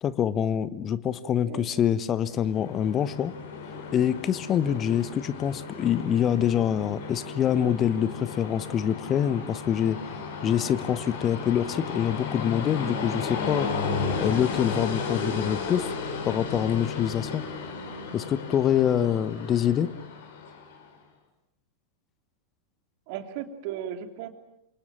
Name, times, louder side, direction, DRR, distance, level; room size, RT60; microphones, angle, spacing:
voice 1, 0.0-3.3 3.9-10.0 10.4-13.7 14.2-15.9 16.2-17.4 18.1-19.9, left 9 dB, 30° left, 16 dB, 1.0 m, -25 dB
Train, 2.2-20.9, left 4 dB, 55° left, 5.6 m, -34 dB
voice 2, 23.1-24.3, right 10 dB, 45° right, 7 dB, 2.9 m, -36 dB
28.0 x 27.5 x 7.4 m, 0.79 s
figure-of-eight pair, 90°, 0 cm